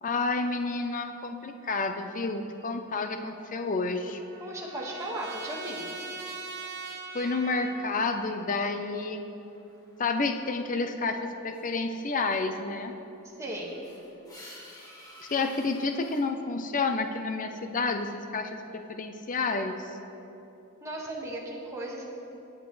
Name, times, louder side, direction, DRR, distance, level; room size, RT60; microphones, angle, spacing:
voice 1, 0.0-4.2 7.1-9.5 10.0-12.9 15.2-19.8, left 3 dB, 40° left, 6 dB, 0.6 m, -30 dB
Trumpet, 3.3-8.1, right 4 dB, 50° right, 1.2 m, -42 dB
voice 2, 4.4-6.0 13.4-13.8 20.8-22.1, right 1 dB, 15° right, -4 dB, 1.7 m, -36 dB
sound 1, 9.3-10.6 11.0-16.2, left 1 dB, 15° left, 1.9 m, -53 dB
22.0 x 8.3 x 3.2 m, 2.9 s
head